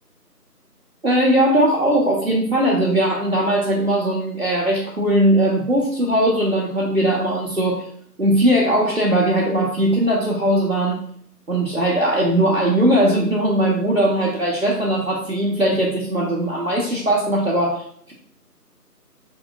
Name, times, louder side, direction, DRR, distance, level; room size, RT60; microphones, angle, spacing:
voice 1, 1.0-7.9 8.2-11.0 11.5-18.1, right 1 dB, 55° right, -4 dB, 1.5 m, -19 dB
8.8 x 5.2 x 2.5 m, 0.63 s
figure-of-eight pair, 175°, 48 cm